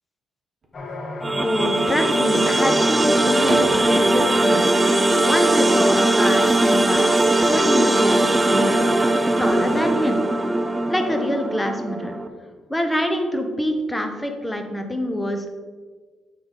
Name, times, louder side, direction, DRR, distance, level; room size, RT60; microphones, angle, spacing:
sound 1, 0.6-1.1 3.0-5.0 5.3-6.0 7.1-7.3 8.5-11.8, right 2 dB, 35° right, 1.3 m, -37 dB
sound 2, 0.7-12.2, left 2 dB, 35° left, 1.4 m, -38 dB
sound 3, 1.2-12.3, right 1 dB, 20° right, 0.4 m, -19 dB
voice 1, 1.4-4.8 5.2-7.1 7.4-8.8 9.4-10.2 10.9-12.1 12.7-15.6, equal, 10° left, 5 dB, 0.9 m, -25 dB
8.0 x 3.5 x 5.0 m, 1.5 s
cardioid pair, 90°, 0 cm